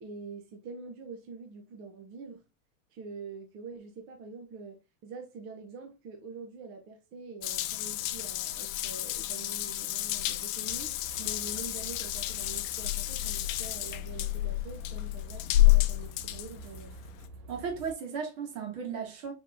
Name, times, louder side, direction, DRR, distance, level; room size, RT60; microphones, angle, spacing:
voice 1, 0.0-2.5 2.9-10.9 11.2-16.9, right 4 dB, 30° right, 0.5 m, -45 dB
Water tap faucet / Bathtub (filling or washing) / Drip, 7.4-17.3, left 16 dB, 65° left, 0.6 m, -30 dB
sound 1, 10.6-17.9, right 2 dB, 85° right, 1.1 m, -49 dB
voice 2, 17.5-19.3, right 6 dB, 60° right, 1.9 m, -35 dB
4.5 x 3.5 x 2.4 m
supercardioid pair, 160°, 43 cm